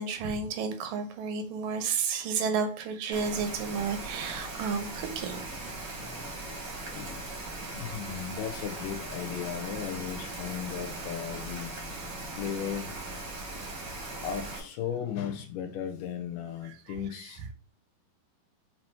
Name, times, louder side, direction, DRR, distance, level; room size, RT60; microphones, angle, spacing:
voice 1, 0.0-5.4 16.9-17.0, right 5 dB, 75° right, 6 dB, 2.4 m, -31 dB
Rain, 3.1-14.6, right 2 dB, 45° right, 1.1 m, -39 dB
voice 2, 7.7-11.7 12.3-12.9 14.0-17.4, left 8 dB, 75° left, 5 dB, 2.2 m, -36 dB
7.5 x 2.8 x 4.4 m, 0.39 s
omnidirectional pair, 4.2 m